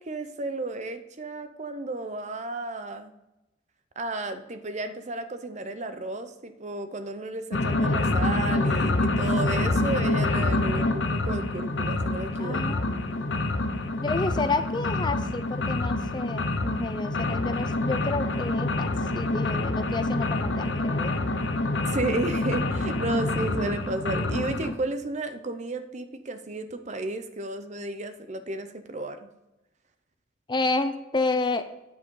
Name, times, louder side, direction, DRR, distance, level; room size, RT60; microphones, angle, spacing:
voice 1, 0.1-3.1 4.0-12.8 21.9-29.3, right 2 dB, 35° right, 9 dB, 0.7 m, -33 dB
sound 1, 7.5-24.7, left 2 dB, 70° left, 1.0 m, -27 dB
voice 2, 12.4-13.3 14.0-21.1 30.5-31.6, left 3 dB, 25° left, 9 dB, 0.5 m, -30 dB
9.2 x 7.9 x 3.8 m, 0.94 s
head